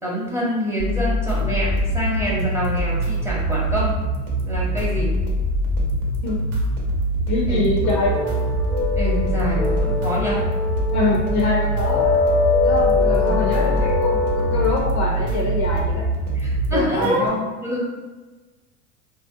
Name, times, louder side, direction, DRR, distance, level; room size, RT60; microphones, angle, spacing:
voice 1, 0.0-4.0 4.4-5.1 7.5-7.6 9.0-10.4 13.2-13.7 16.3-17.3 17.6-17.8, right 1 dB, 5° right, -6 dB, 0.6 m, -26 dB
sound 1, 0.8-16.8, right 1 dB, 35° right, 0.8 m, -24 dB
sound 2, 1.3-17.3, right 1 dB, 60° right, 0.7 m, -32 dB
voice 2, 7.3-8.2 10.9-12.1 12.6-16.1 16.7-17.4, left 3 dB, 40° left, -3 dB, 0.4 m, -24 dB
sound 3, 7.8-14.7, left 3 dB, 85° left, 0.6 m, -23 dB
2.4 x 2.1 x 2.6 m, 1.2 s
hypercardioid pair, 90°, 46 cm